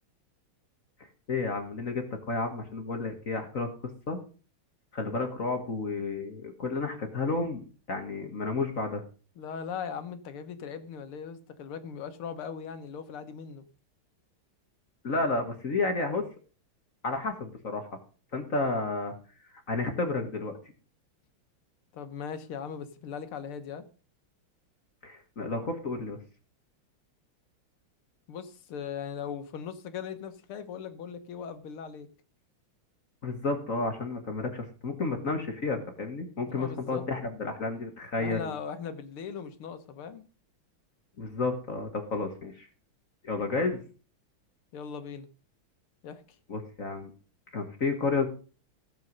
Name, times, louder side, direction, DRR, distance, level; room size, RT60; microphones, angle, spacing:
voice 1, 1.0-3.7 4.1-4.2 4.9-9.0 15.0-16.2 17.0-17.9 18.3-19.1 19.7-20.6 25.0-26.2 33.2-38.6 41.2-42.7 43.2-43.8 46.5-47.1 47.5-48.3, left 3 dB, 40° left, 5 dB, 1.8 m, -31 dB
voice 2, 9.4-13.6 21.9-23.8 28.3-32.1 36.5-37.1 38.2-40.2 44.7-45.3 46.0-46.2, left 7 dB, 85° left, 9 dB, 2.1 m, -39 dB
15.5 x 7.9 x 5.3 m, 0.37 s
omnidirectional pair, 2.3 m